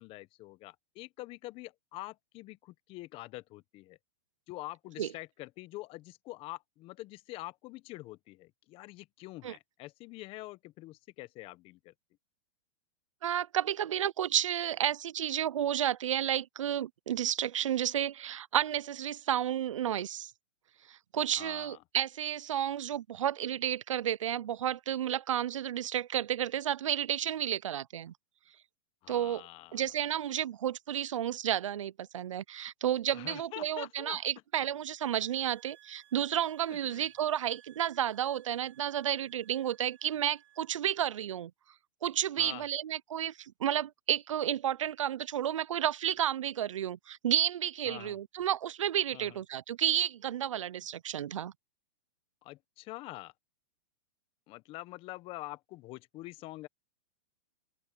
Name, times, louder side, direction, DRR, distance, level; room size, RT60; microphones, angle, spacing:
voice 1, 0.0-4.0 4.5-11.9 21.4-21.8 29.0-29.9 33.1-34.2 36.7-37.1 42.4-42.6 47.8-48.2 49.1-49.4 52.4-53.3 54.5-56.7, left 19 dB, 35° left, 1.2 m, -45 dB
voice 2, 13.2-20.3 20.9-28.1 29.1-29.4 29.7-41.5 42.0-51.5, right 10 dB, 85° right, 0.5 m, -31 dB
sound 1, 35.0-40.8, right 14 dB, 65° right, 5.4 m, -61 dB
open air
hypercardioid pair, 130°, 16 cm